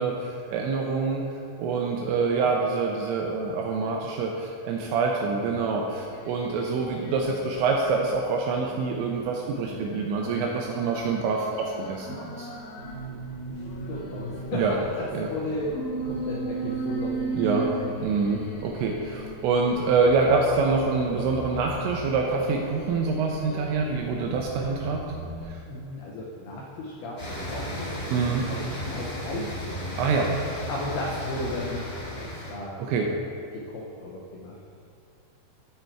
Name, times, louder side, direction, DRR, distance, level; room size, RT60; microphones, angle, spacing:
voice 1, 0.0-12.5 14.5-14.7 15.1-15.3 17.3-17.7 18.0-25.0 25.4-25.6 28.1-28.5 29.9-30.3 32.8-33.1, right 4 dB, 85° right, 0 dB, 2.6 m, -26 dB
sound 1, 6.0-8.0 8.5-13.0 13.5-20.4 21.0-23.9 24.4-24.7, right 1 dB, 65° left, 2.8 m, -38 dB
sound 2, 12.8-25.5, right 2 dB, 65° right, 1.9 m, -40 dB
voice 2, 13.9-15.7 16.0-17.6 25.7-28.6 28.8-29.5 30.7-33.2 33.5-34.6, left 2 dB, 85° left, -3 dB, 2.2 m, -35 dB
sound 3, 27.2-32.5, equal, 45° left, 1.1 m, -34 dB
13.0 x 4.4 x 4.6 m, 2.4 s
omnidirectional pair, 5.7 m